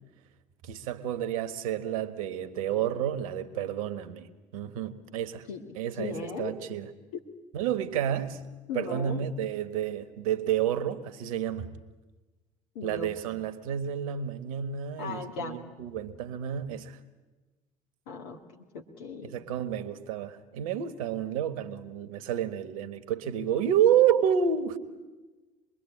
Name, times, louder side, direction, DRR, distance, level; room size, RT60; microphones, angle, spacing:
voice 1, 0.6-4.3 4.5-5.5 5.7-6.9 7.5-8.4 8.7-11.7 12.8-17.0 19.3-24.8, right 9 dB, 75° right, 1.4 m, -29 dB
voice 2, 5.5-6.5 7.1-7.2 8.7-9.2 12.7-13.1 15.0-15.6 18.1-19.3, left 4 dB, 70° left, 2.1 m, -37 dB
26.0 x 21.5 x 8.7 m
figure-of-eight pair, 55°, 18 cm